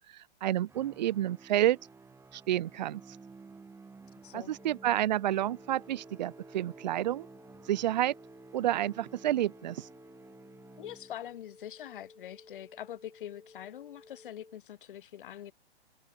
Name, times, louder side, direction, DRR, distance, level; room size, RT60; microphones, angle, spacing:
voice 1, 0.4-1.8 2.3-3.0 4.3-7.3 7.7-8.1 8.5-9.9, right 13 dB, 40° right, 0.4 m, -29 dB
sound 1, 0.6-11.4, right 4 dB, 10° right, 5.0 m, -53 dB
voice 2, 4.2-4.5 10.8-15.5, left 11 dB, 50° left, 1.8 m, -44 dB
sound 2, 4.6-14.6, left 3 dB, 90° left, 2.7 m, -57 dB
figure-of-eight pair, 120°, 33 cm